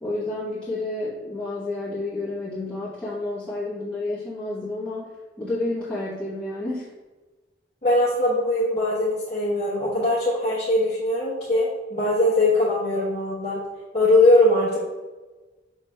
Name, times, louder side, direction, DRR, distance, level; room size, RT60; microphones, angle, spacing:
voice 1, 0.0-5.1 5.4-6.9, left 2 dB, 5° left, -12 dB, 1.0 m, -30 dB
voice 2, 7.8-13.6 13.9-14.8, left 1 dB, 35° left, -6 dB, 0.8 m, -21 dB
5.6 x 2.5 x 3.2 m, 1.2 s
head